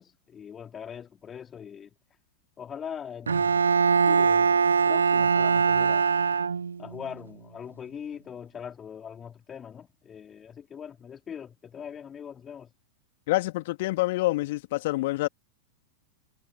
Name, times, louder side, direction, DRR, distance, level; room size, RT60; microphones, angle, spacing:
voice 1, 0.0-2.0 2.6-3.7 4.1-6.2 6.8-12.7, left 8 dB, 20° left, 3.5 m, -41 dB
Bowed string instrument, 3.3-7.0, right 6 dB, 75° right, 0.5 m, -22 dB
voice 2, 13.3-15.3, left 19 dB, 50° left, 2.8 m, -27 dB
figure-of-eight pair, 90°, 0 cm